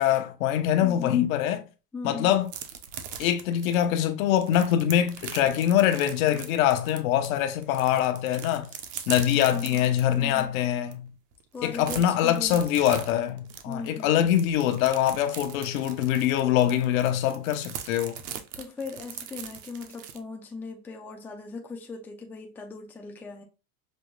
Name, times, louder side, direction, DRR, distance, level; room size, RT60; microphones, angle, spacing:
voice 1, 0.0-1.6 2.0-2.5 3.2-8.7 9.1-11.1 11.6-18.2, left 11 dB, 70° left, 0.8 m, -24 dB
voice 2, 0.8-1.2 1.9-2.4 9.2-10.7 11.5-12.6 13.7-14.5 18.6-23.4, left 4 dB, 5° left, 0.4 m, -39 dB
sound 1, 2.5-7.3 7.6-10.5 10.9-11.0 11.3-20.2, right 9 dB, 50° right, 0.7 m, -41 dB
5.2 x 2.1 x 3.0 m
supercardioid pair, 140°, 43 cm